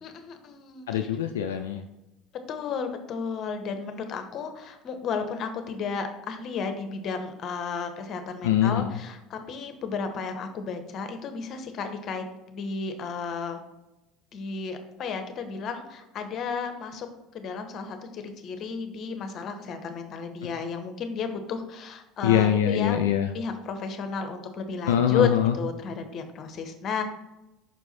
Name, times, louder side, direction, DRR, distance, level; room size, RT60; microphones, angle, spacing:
voice 1, 0.0-0.9 2.5-12.2 12.5-13.6 14.3-17.1 17.3-23.0 23.3-25.3 25.5-27.0, left 6 dB, 50° left, 7 dB, 1.0 m, -33 dB
voice 2, 0.9-1.8 8.4-8.9 22.2-23.3 24.9-25.6, left 9 dB, 80° left, 5 dB, 0.4 m, -23 dB
6.0 x 4.6 x 4.2 m, 0.98 s
hypercardioid pair, 75°, 0 cm